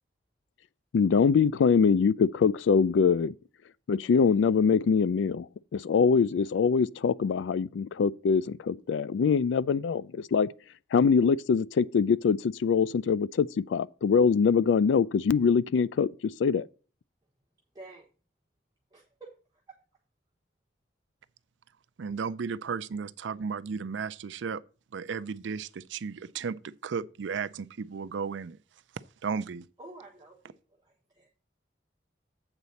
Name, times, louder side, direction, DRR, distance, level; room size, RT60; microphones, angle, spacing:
voice 1, 0.9-3.3 3.9-10.5 10.9-16.7, left 6 dB, 80° left, 0.3 m, -24 dB
voice 2, 17.7-18.1 18.9-19.3 29.8-31.3, right 2 dB, 20° right, 1.3 m, -49 dB
voice 3, 22.0-24.6 24.9-28.6 29.2-29.7, right 5 dB, 80° right, 0.4 m, -34 dB
8.0 x 4.1 x 6.9 m
head